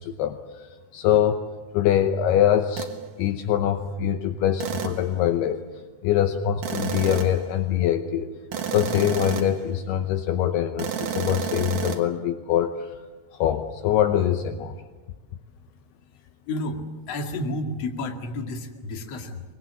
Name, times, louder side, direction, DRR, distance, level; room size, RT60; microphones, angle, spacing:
voice 1, 0.0-1.4 1.7-2.9 3.2-5.6 6.0-8.4 8.7-13.0 13.4-14.8, left 10 dB, 75° left, 7 dB, 2.7 m, -23 dB
sound 1, 2.8-3.0 4.6-5.1 6.6-7.5 8.5-9.6 10.8-12.0, right 8 dB, 60° right, 2.7 m, -30 dB
voice 2, 16.1-19.4, left 1 dB, 45° left, 3 dB, 2.7 m, -31 dB
25.0 x 22.0 x 7.7 m, 1.3 s
omnidirectional pair, 4.9 m